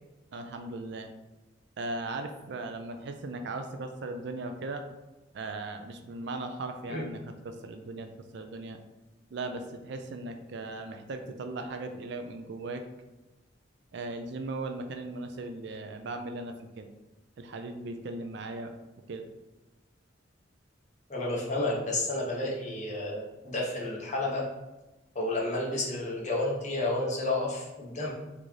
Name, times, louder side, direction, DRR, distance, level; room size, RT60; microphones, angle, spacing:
voice 1, 0.3-1.1 1.8-4.8 5.3-8.8 9.3-12.8 13.9-16.9 17.4-18.7 19.1-19.2, right 2 dB, 60° right, 6 dB, 0.4 m, -38 dB
voice 2, 21.1-24.4 25.1-28.1, left 2 dB, 40° left, -3 dB, 1.0 m, -31 dB
3.9 x 3.5 x 3.2 m, 1.1 s
head